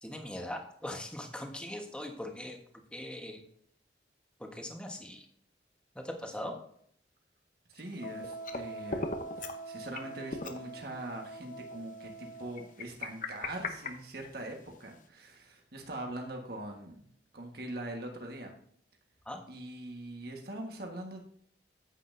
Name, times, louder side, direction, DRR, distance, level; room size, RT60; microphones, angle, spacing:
voice 1, 0.0-2.6 2.9-3.4 4.4-5.3 5.9-6.6 19.2-19.4, left 1 dB, 5° left, 2 dB, 1.3 m, -40 dB
voice 2, 7.7-9.1 9.4-17.1 17.3-18.6 19.5-21.2, right 1 dB, 60° right, 2 dB, 1.5 m, -42 dB
sound 1, 7.8-8.6 8.9-9.6 9.9-10.0 10.3-10.6 11.2-11.3 12.6-14.6, left 3 dB, 45° left, 0.9 m, -38 dB
Wind instrument woodwind instrument, 8.0-12.7, right 2 dB, 75° left, 1.1 m, -44 dB
9.8 x 8.6 x 2.7 m, 0.64 s
head